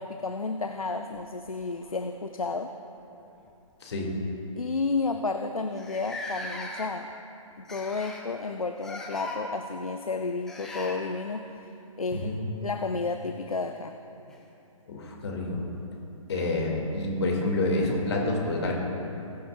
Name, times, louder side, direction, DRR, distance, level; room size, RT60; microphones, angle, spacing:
voice 1, 0.0-2.8 4.6-7.1 7.6-11.7 12.0-12.3 12.6-14.0, left 3 dB, 90° left, 7 dB, 0.6 m, -31 dB
sound 1, 1.1-2.3 3.3-3.5 3.9-4.1 4.8-4.9 5.1-5.2 5.8-7.1 7.7-8.3 8.8-9.4 10.5-11.0 13.1-13.2 14.3-14.4, left 2 dB, 5° left, 0.4 m, -39 dB
voice 2, 3.8-4.1 12.1-12.4 14.9-15.6 16.3-18.7, left 2 dB, 50° left, 0 dB, 2.3 m, -28 dB
20.5 x 7.5 x 2.4 m, 2.9 s
figure-of-eight pair, 140°, 18 cm